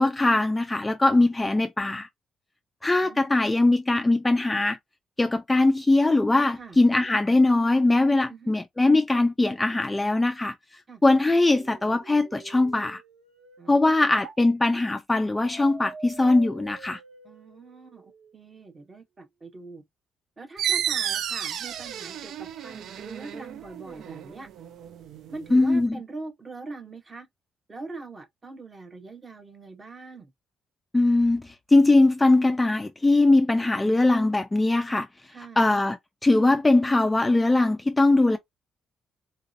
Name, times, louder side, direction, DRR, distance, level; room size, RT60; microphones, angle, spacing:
voice 1, 0.0-2.1 2.8-4.8 5.2-13.0 13.7-17.0 25.5-26.0 30.9-35.1 35.6-38.4, left 2 dB, 10° left, 0.3 m, -21 dB
sound 1, 11.5-14.4 15.4-18.4, right 4 dB, 90° right, 1.5 m, -46 dB
voice 2, 13.6-14.2 17.2-19.8 20.4-24.5 25.3-27.3 27.7-30.3 35.3-35.7 38.3-38.4, right 3 dB, 20° right, 0.9 m, -42 dB
sound 2, 20.6-25.9, right 9 dB, 70° right, 0.4 m, -32 dB
3.9 x 2.7 x 2.5 m
cardioid pair, 165°, 0 cm